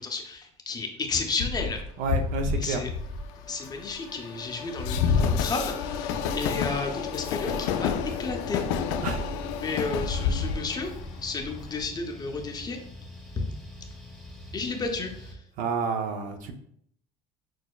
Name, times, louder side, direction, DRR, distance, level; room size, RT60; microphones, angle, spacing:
voice 1, 0.0-1.8 2.5-2.9 3.5-7.9 8.2-8.6 9.6-10.9 11.2-12.8 13.4-13.5 14.5-15.4, left 4 dB, 25° left, 4 dB, 0.6 m, -32 dB
Train, 1.4-11.8, left 6 dB, 80° left, 0.4 m, -29 dB
voice 2, 2.0-2.8 9.0-9.2 15.6-16.5, right 4 dB, 60° right, 6 dB, 0.5 m, -29 dB
sound 1, 8.0-15.3, left 1 dB, ahead, 0.9 m, -44 dB
6.2 x 2.1 x 2.3 m, 0.67 s
supercardioid pair, 100°, 15 cm